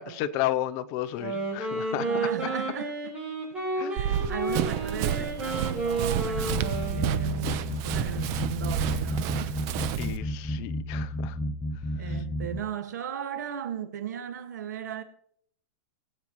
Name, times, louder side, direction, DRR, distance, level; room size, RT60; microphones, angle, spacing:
voice 1, 0.0-2.1 3.8-4.0 10.0-11.4, left 13 dB, 40° left, 0.7 m, -32 dB
Wind instrument woodwind instrument, 1.1-7.6, right 3 dB, 15° right, 4.3 m, -32 dB
voice 2, 2.0-3.1 3.9-9.6 12.0-15.0, right 8 dB, 85° right, 1.8 m, -36 dB
Run, 4.0-10.2, right 10 dB, 40° right, 0.9 m, -31 dB
sound 1, 6.3-12.6, equal, 5° left, 0.8 m, -32 dB
20.5 x 8.6 x 3.1 m
supercardioid pair, 145°, 9 cm